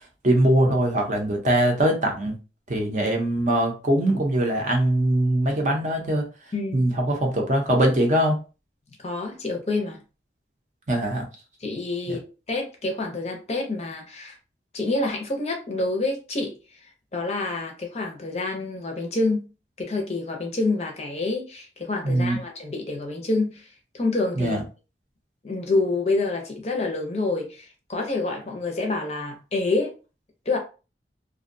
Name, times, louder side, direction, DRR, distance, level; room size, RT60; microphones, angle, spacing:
voice 1, 0.2-2.3 2.7-6.3 6.7-8.4 10.9-11.2 12.1-12.2 22.0-22.4 24.4-24.6, right 1 dB, 40° right, 0.6 m, -22 dB
voice 2, 6.5-6.9 9.0-10.0 11.6-14.4 14.7-16.5 16.8-19.5 19.8-23.7 23.9-24.6 25.4-29.9 30.5-30.6, left 2 dB, 35° left, 0.5 m, -27 dB
2.5 x 2.1 x 2.6 m
head